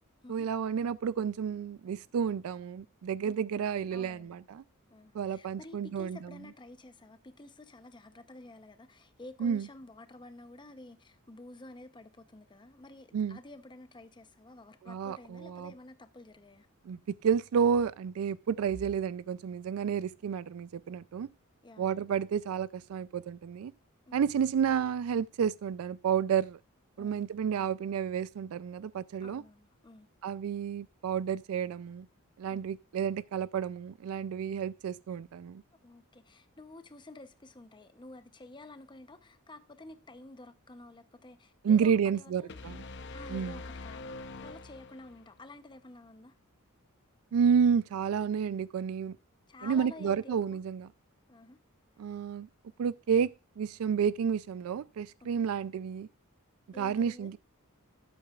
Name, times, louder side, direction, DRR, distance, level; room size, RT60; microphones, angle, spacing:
voice 1, 0.3-4.6 5.1-6.4 9.4-9.7 13.1-13.4 14.8-15.7 16.8-21.3 21.8-23.7 24.1-26.6 27.0-29.4 30.2-32.1 32.4-35.6 41.6-42.8 43.3-43.6 47.3-49.2 49.6-50.9 52.0-52.5 52.8-53.3 53.6-56.1 56.7-57.4, right 7 dB, 80° right, 0.3 m, -30 dB
voice 2, 3.2-4.4 4.9-16.7 21.6-22.0 24.1-24.2 27.0-27.3 29.2-30.1 32.5-32.7 35.8-42.7 43.1-46.3 49.5-50.6 51.3-51.6 55.4-55.5 56.7-57.3, left 2 dB, 20° left, 0.7 m, -51 dB
sound 1, 42.5-45.4, left 2 dB, 55° left, 0.7 m, -44 dB
12.5 x 8.6 x 2.4 m
head